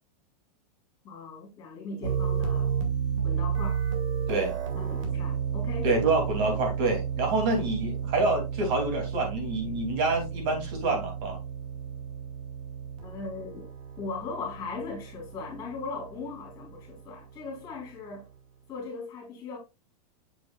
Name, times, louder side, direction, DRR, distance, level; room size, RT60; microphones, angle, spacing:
voice 1, 1.0-2.7 3.2-3.8 4.7-5.9 13.0-13.7 14.0-18.3 18.7-19.6, left 4 dB, 15° left, 3.8 m, -38 dB
sound 1, 2.0-17.9, right 7 dB, 55° right, 2.3 m, -32 dB
voice 2, 5.8-11.4, right 2 dB, 35° right, 2.6 m, -27 dB
7.8 x 6.2 x 2.3 m
supercardioid pair, 175°, 20 cm